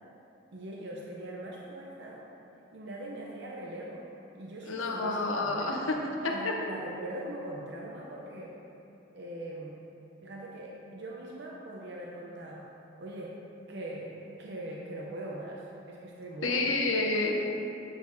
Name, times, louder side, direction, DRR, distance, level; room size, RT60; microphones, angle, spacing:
voice 1, 0.5-2.2 2.7-4.0 4.3-5.9 6.2-8.5 9.1-9.8 10.2-12.7 13.0-13.3 13.7-16.8, right 1 dB, 60° right, -3 dB, 0.6 m, -41 dB
voice 2, 4.7-5.8 16.4-17.4, left 2 dB, 85° left, 1 dB, 0.8 m, -29 dB
8.3 x 6.5 x 2.7 m, 2.9 s
head